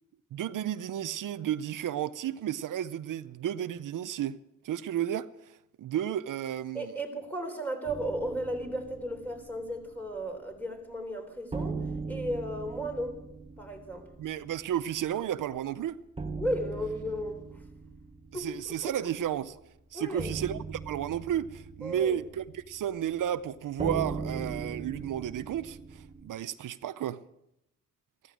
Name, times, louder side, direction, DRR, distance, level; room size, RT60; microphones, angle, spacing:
voice 1, 0.3-4.4 4.6-5.3 5.8-6.9 14.2-16.0 18.4-19.6 19.9-27.2, right 10 dB, 85° right, 0.6 m, -32 dB
voice 2, 6.7-11.8 12.1-13.2 13.6-14.1 16.4-17.6 18.3-18.5 18.8-19.1 19.9-20.3 21.8-22.2, equal, 5° left, 3.6 m, -35 dB
sound 1, 7.9-10.7 11.0-11.1 11.5-26.3, right 4 dB, 15° right, 1.0 m, -40 dB
15.0 x 14.5 x 6.2 m
wide cardioid pair, 105°, 31 cm